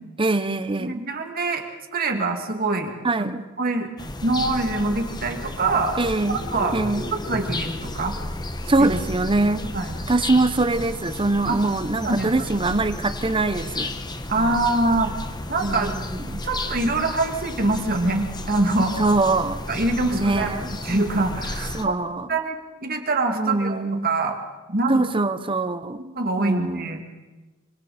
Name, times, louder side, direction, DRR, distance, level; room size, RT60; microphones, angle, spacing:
voice 1, 0.2-1.0 3.0-3.4 6.0-6.4 6.7-7.1 8.7-9.6 10.1-13.9 14.4-14.5 15.6-16.4 19.0-19.6 20.1-20.7 21.7-22.3 23.3-24.1 24.9-26.0 26.4-27.0, right 2 dB, 25° right, 11 dB, 0.9 m, -23 dB
voice 2, 0.8-1.6 1.9-2.9 3.2-3.9 4.2-6.0 6.3-6.8 7.1-8.1 8.8-8.9 9.7-9.9 11.5-11.6 12.0-12.5 14.3-15.1 15.5-15.9 16.4-19.0 19.7-20.6 20.8-21.9 22.3-24.4 24.7-25.1 26.0-27.0, right 2 dB, 45° right, 4 dB, 2.6 m, -24 dB
sound 1, 4.0-21.9, left 2 dB, 20° left, 1.0 m, -33 dB
25.5 x 25.5 x 4.4 m, 1.2 s
head